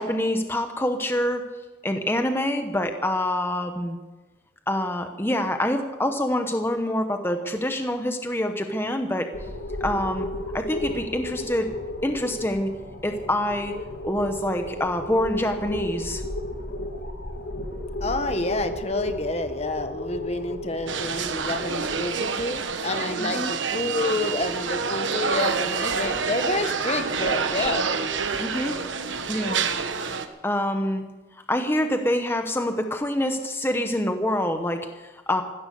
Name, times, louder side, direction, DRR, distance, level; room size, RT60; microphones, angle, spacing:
voice 1, 0.0-1.5 1.8-4.0 4.7-9.3 9.8-10.3 10.5-11.7 12.0-12.7 13.0-13.8 14.0-16.2 23.2-23.5 28.4-28.8 29.3-29.6 30.4-31.0 31.5-35.4, left 1 dB, 10° left, 6 dB, 0.9 m, -26 dB
sound 1, 9.3-22.0, left 1 dB, 65° left, 2.1 m, -33 dB
voice 2, 18.0-27.9, left 2 dB, 35° left, 8 dB, 1.2 m, -29 dB
sound 2, 20.9-30.3, right 5 dB, 85° right, 1.3 m, -27 dB
15.5 x 13.5 x 6.5 m, 1.2 s
head